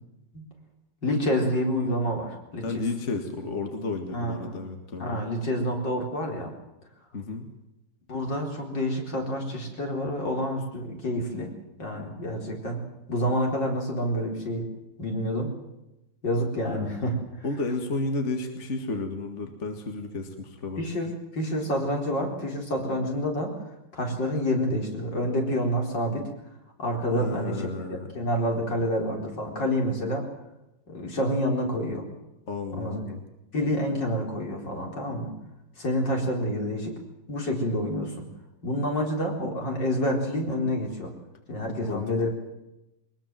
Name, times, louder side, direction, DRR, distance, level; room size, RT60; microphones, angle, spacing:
voice 1, 1.0-2.6 4.1-4.6 5.0-6.5 8.1-11.5 11.8-12.8 13.1-14.7 15.0-15.6 16.2-17.5 20.8-21.1 21.3-23.5 23.9-26.3 26.8-30.3 30.9-32.0 32.8-33.0 33.5-35.3 35.8-37.0 37.3-38.2 38.6-41.1 41.5-42.3, equal, 70° left, 1 dB, 5.0 m, -28 dB
voice 2, 2.6-5.2 7.1-7.5 17.4-20.8 27.1-28.1 32.5-33.2 41.8-42.3, left 3 dB, 40° left, 5 dB, 2.2 m, -32 dB
22.0 x 20.5 x 7.6 m, 0.92 s
omnidirectional pair, 2.0 m